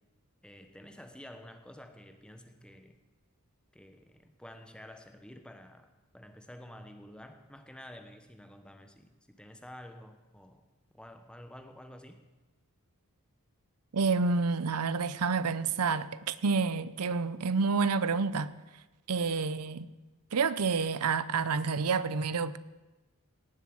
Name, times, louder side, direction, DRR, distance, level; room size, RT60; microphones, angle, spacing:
voice 1, 0.4-3.0 3.7-10.6 10.9-12.2, left 1 dB, 5° left, 1.1 m, -50 dB
voice 2, 13.9-18.5 19.1-19.9 20.3-22.6, right 4 dB, 85° right, 0.7 m, -29 dB
18.0 x 7.2 x 7.9 m
head